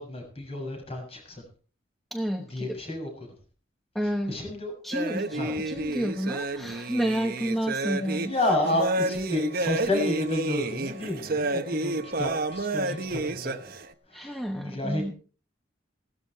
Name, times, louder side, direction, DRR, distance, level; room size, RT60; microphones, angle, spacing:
voice 1, 0.0-1.4 2.5-3.1 4.0-4.7 5.3-5.8 8.1-13.8 14.1-15.1, left 1 dB, 30° left, 2 dB, 6.9 m, -31 dB
voice 2, 2.1-2.8 3.9-4.6 4.8-8.3 14.1-15.1, equal, ahead, 4 dB, 1.1 m, -30 dB
sound 1, 4.9-13.9, right 2 dB, 50° right, 1.1 m, -30 dB
17.0 x 13.5 x 4.6 m, 0.40 s
head